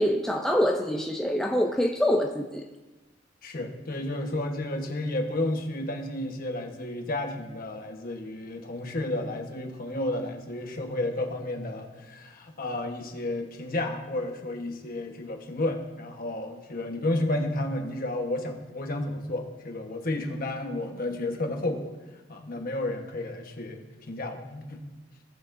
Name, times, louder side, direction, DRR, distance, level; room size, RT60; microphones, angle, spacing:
voice 1, 0.0-2.6, equal, 5° left, 1 dB, 0.5 m, -25 dB
voice 2, 3.4-21.9 22.3-24.8, left 1 dB, 50° left, 3 dB, 1.2 m, -32 dB
18.0 x 7.0 x 2.6 m, 1.2 s
head